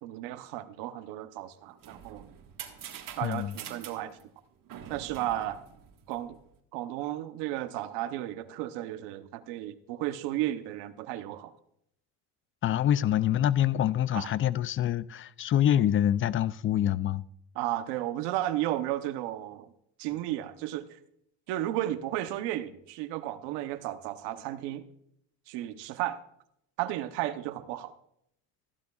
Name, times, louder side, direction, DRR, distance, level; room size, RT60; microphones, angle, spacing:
voice 1, 0.0-2.3 3.2-4.2 4.9-5.6 6.1-6.4 6.7-11.5 14.1-14.3 17.6-19.7 20.0-20.9 21.5-24.8 25.5-26.2 26.8-27.9, right 14 dB, 85° right, 1.0 m, -33 dB
sound 1, 1.5-6.5, right 8 dB, 50° right, 1.7 m, -46 dB
voice 2, 3.2-3.5 12.6-17.2, left 11 dB, 35° left, 0.4 m, -26 dB
15.5 x 12.0 x 2.4 m
cardioid pair, 110°, 41 cm